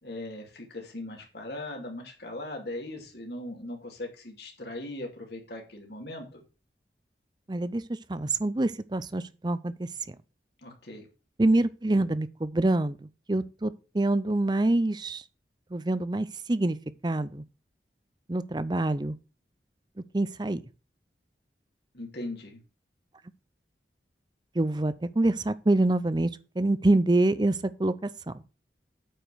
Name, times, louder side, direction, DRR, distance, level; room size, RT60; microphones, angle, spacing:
voice 1, 0.0-6.4 10.6-11.1 21.9-22.6, left 1 dB, 70° left, 2.6 m, -39 dB
voice 2, 7.5-7.8 8.1-9.9 11.4-15.2 15.7-16.8 17.0-17.4 18.3-19.2 20.1-20.6 24.6-26.3 26.6-28.1, right 2 dB, 25° right, 0.5 m, -26 dB
8.8 x 5.2 x 6.2 m
head